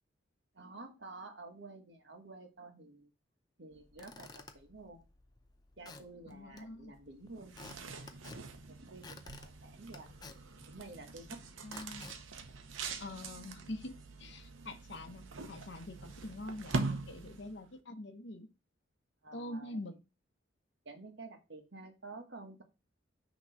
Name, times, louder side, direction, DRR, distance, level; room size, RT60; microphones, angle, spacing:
voice 1, 0.5-3.1 3.6-5.0 5.8-10.1 10.7-11.4 19.2-19.8 20.8-22.6, right 3 dB, 60° right, 4 dB, 1.4 m, -51 dB
Squeak / Wood, 3.7-13.3, left 3 dB, 20° left, 0.5 m, -55 dB
voice 2, 6.3-6.9 11.6-12.2 13.0-18.5 19.3-19.9, left 1 dB, 60° left, 8 dB, 0.9 m, -45 dB
sound 1, 7.3-17.7, right 3 dB, 80° right, 0.8 m, -43 dB
6.0 x 3.0 x 5.6 m, 0.28 s
head